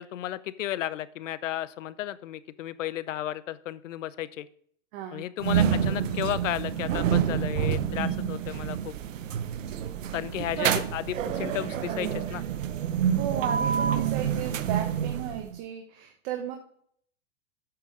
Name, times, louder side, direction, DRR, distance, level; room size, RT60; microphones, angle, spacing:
voice 1, 0.0-4.5 5.1-8.9 10.1-12.4, left 13 dB, 75° left, 17 dB, 0.8 m, -33 dB
voice 2, 4.9-5.2 10.6-10.8 13.2-16.6, right 10 dB, 50° right, 3 dB, 1.4 m, -34 dB
sound 1, 5.4-15.6, right 9 dB, 85° right, 0.9 m, -28 dB
8.8 x 5.9 x 4.9 m, 0.63 s
hypercardioid pair, 120°, 38 cm